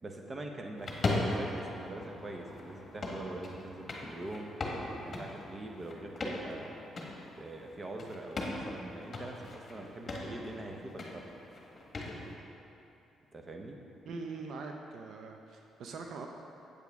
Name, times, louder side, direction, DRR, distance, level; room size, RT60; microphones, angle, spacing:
voice 1, 0.0-4.5 5.0-6.8 7.4-11.2 13.3-13.8, right 2 dB, 30° right, 2 dB, 0.9 m, -43 dB
sound 1, 0.8-12.4, left 2 dB, 35° left, 1.4 m, -39 dB
voice 2, 14.1-16.3, right 4 dB, 70° right, 3 dB, 0.6 m, -42 dB
8.3 x 8.1 x 3.5 m, 2.9 s
cardioid pair, 90°, 0 cm